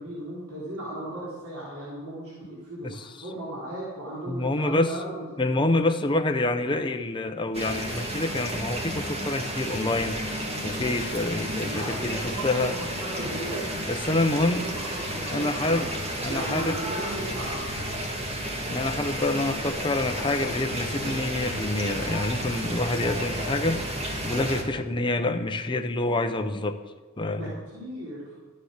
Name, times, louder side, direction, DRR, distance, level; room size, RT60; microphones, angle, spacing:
voice 1, 0.0-5.3 11.6-15.9 16.3-17.8 27.3-28.4, right 1 dB, 85° right, -6 dB, 3.8 m, -36 dB
voice 2, 4.3-4.9 5.4-12.7 13.9-14.6 15.3-15.9 16.2-16.8 18.7-26.8 27.2-27.5, left 2 dB, 25° left, 6 dB, 0.7 m, -27 dB
sound 1, 7.5-24.6, right 1 dB, 30° right, 1.9 m, -32 dB
13.0 x 9.6 x 6.5 m, 1.3 s
head